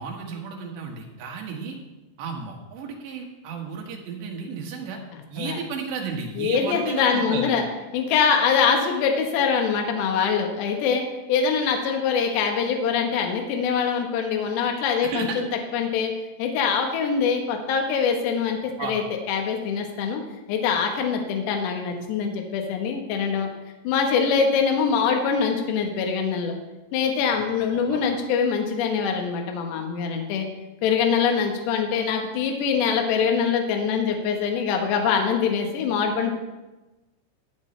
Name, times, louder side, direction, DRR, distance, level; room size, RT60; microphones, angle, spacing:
voice 1, 0.0-1.8 2.2-5.0 5.3-7.5 15.0-15.4 18.8-19.0 27.9-28.0, right 5 dB, 65° right, 0 dB, 3.5 m, -33 dB
voice 2, 6.4-7.6 7.9-16.1 16.4-19.0 19.3-20.2 20.5-23.5 23.8-26.5 26.9-30.5 30.8-36.3, left 6 dB, 70° left, 3 dB, 3.1 m, -23 dB
16.0 x 9.3 x 3.3 m, 1.1 s
omnidirectional pair, 5.8 m